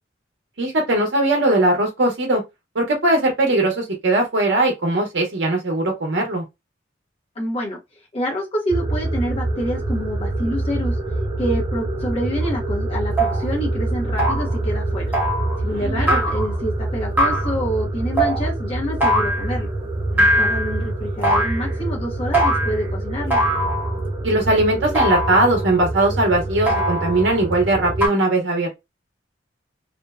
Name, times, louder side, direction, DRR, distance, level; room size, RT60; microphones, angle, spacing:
voice 1, 0.6-2.4 2.7-6.4 15.7-16.2 20.1-20.4 24.2-28.7, right 2 dB, 70° right, 0.7 m, -20 dB
voice 2, 7.4-7.8 8.1-10.9 11.4-15.1 15.6-19.7 20.4-23.4, equal, 35° left, 0.8 m, -27 dB
sound 1, 8.7-28.0, right 2 dB, 25° right, 0.4 m, -26 dB
sound 2, 12.4-12.5 13.2-13.4 14.2-14.5 15.1-15.6 16.1-16.5 17.2-17.5 18.2-18.4 19.0-19.5 20.2-20.8 21.2-21.7 22.3-22.8 23.3-24.0 24.9-25.6 26.6-27.3 28.0-28.1, equal, 10° right, 1.0 m, -21 dB
2.5 x 2.1 x 2.3 m
head